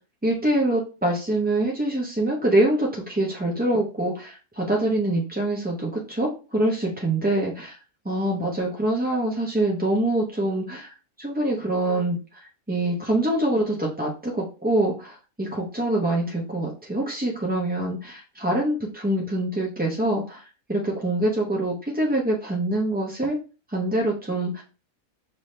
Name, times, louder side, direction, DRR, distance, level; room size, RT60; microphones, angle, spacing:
voice 1, 0.2-7.7 8.1-12.2 12.7-23.4 23.7-24.6, right 1 dB, 15° right, -2 dB, 0.4 m, -25 dB
5.5 x 2.7 x 3.2 m, 0.34 s
omnidirectional pair, 1.5 m